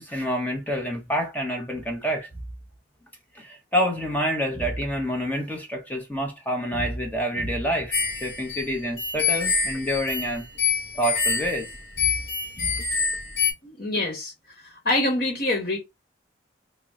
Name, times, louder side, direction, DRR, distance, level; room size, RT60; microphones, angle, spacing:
voice 1, 0.0-2.3 3.3-10.4 10.9-11.7 12.0-12.1 12.6-12.8, equal, 10° left, 0.6 m, -27 dB
sound 1, 7.9-13.5, left 5 dB, 85° left, 1.2 m, -26 dB
voice 2, 13.6-14.3 14.8-15.8, left 2 dB, 50° left, 1.0 m, -25 dB
3.5 x 2.0 x 4.0 m
head